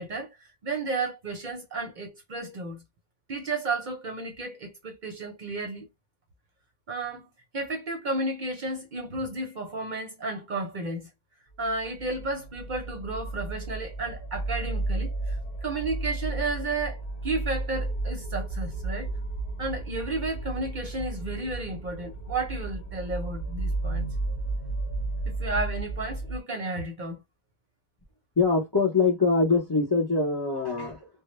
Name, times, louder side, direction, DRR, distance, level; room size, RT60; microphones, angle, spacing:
voice 1, 0.0-2.8 3.3-5.9 6.9-11.1 11.6-19.1 19.6-24.1 25.3-27.2, right 2 dB, 50° right, 0.7 m, -33 dB
sound 1, 11.6-26.4, right 2 dB, 65° left, 1.0 m, -33 dB
voice 2, 28.4-31.1, left 4 dB, 25° left, 0.6 m, -23 dB
2.1 x 2.0 x 3.0 m
omnidirectional pair, 1.1 m